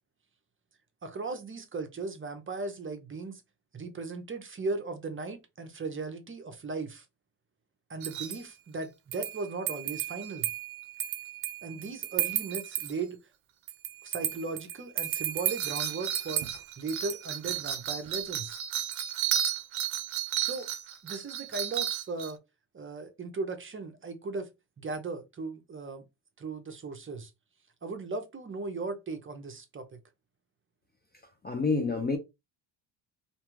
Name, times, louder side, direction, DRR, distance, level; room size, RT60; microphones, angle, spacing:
voice 1, 1.0-3.4 3.7-7.1 7.9-10.5 11.6-13.2 14.0-16.5 16.8-18.6 20.4-20.7 21.0-22.4 22.7-24.5 24.8-26.0 26.4-27.3 27.8-29.9, right 3 dB, 30° right, 0.6 m, -37 dB
sound 1, 8.0-8.4 9.1-12.9 13.7-22.3, right 11 dB, 85° right, 0.6 m, -33 dB
voice 2, 31.4-32.2, left 4 dB, 25° left, 0.4 m, -27 dB
2.5 x 2.2 x 3.1 m
cardioid pair, 90°, 46 cm